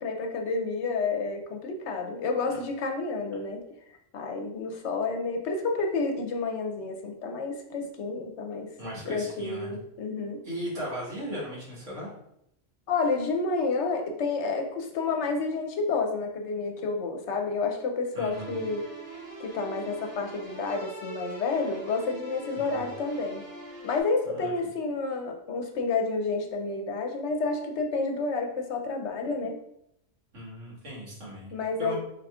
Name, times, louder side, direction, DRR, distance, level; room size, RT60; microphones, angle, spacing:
voice 1, 0.0-3.6 4.1-8.7 9.1-10.4 12.9-18.8 19.4-23.5 23.8-29.6 31.5-32.0, left 4 dB, 70° left, 4 dB, 0.8 m, -30 dB
voice 2, 8.8-9.8 10.4-12.1 18.1-18.6 22.6-22.9 24.2-24.5 30.3-31.5 31.8-32.0, equal, 75° right, -6 dB, 2.0 m, -37 dB
sound 1, 18.3-24.0, right 3 dB, 10° right, 1.6 m, -43 dB
4.9 x 3.5 x 2.3 m, 0.77 s
omnidirectional pair, 1.3 m